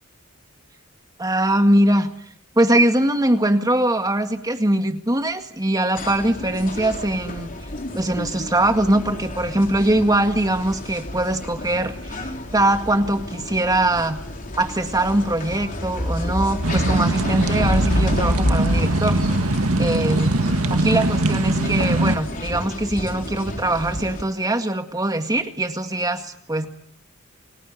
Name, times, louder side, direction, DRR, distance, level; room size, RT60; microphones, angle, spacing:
voice 1, 1.2-2.1 2.6-7.5 7.9-14.2 14.6-20.4 20.7-26.7, right 1 dB, 15° right, 6 dB, 2.0 m, -22 dB
sound 1, 5.9-24.2, left 1 dB, 40° left, 3.9 m, -29 dB
sound 2, 16.6-22.2, right 2 dB, 85° right, 1.9 m, -22 dB
30.0 x 22.5 x 8.4 m, 0.64 s
head